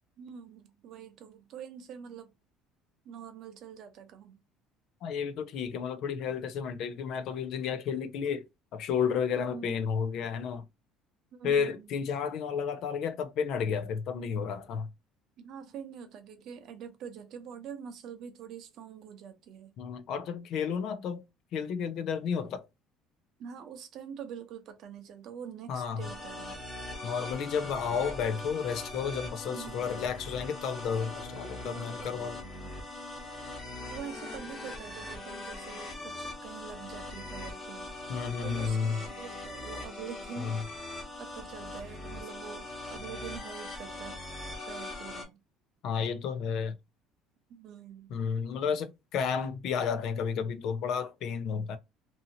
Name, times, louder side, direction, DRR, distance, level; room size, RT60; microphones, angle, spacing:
voice 1, 0.2-2.3 3.0-4.4 9.4-9.7 11.3-11.9 15.4-19.7 23.4-26.6 29.5-30.1 31.6-32.8 33.9-37.9 38.4-44.2 44.7-45.4 47.5-48.1, right 7 dB, 55° right, 0.7 m, -45 dB
voice 2, 5.0-8.5 8.7-10.7 11.4-14.9 19.8-21.2 21.5-22.7 25.7-26.0 27.0-32.4 38.1-39.0 40.4-40.6 45.8-46.8 48.1-51.8, left 6 dB, 60° left, 0.5 m, -32 dB
sound 1, 26.0-45.2, left 2 dB, 30° left, 1.2 m, -41 dB
2.7 x 2.7 x 2.7 m
cardioid pair, 125°, 0 cm